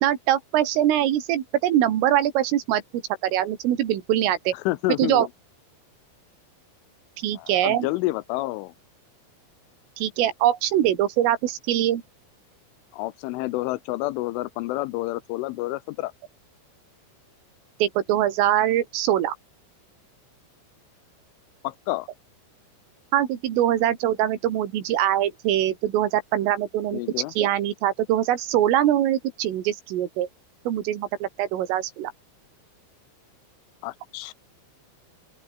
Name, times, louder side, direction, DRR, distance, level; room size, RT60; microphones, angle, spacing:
voice 1, 0.0-2.8 3.2-4.5 5.0-5.3 7.2-7.9 10.0-12.0 17.8-19.3 23.1-27.0 27.4-30.3 30.7-32.1, right 12 dB, 80° right, 5.0 m, -23 dB
voice 2, 4.7-5.3 7.3-8.7 12.9-16.1 21.6-22.1 26.9-27.3 33.8-34.3, left 19 dB, 80° left, 3.2 m, -29 dB
open air
omnidirectional pair, 5.7 m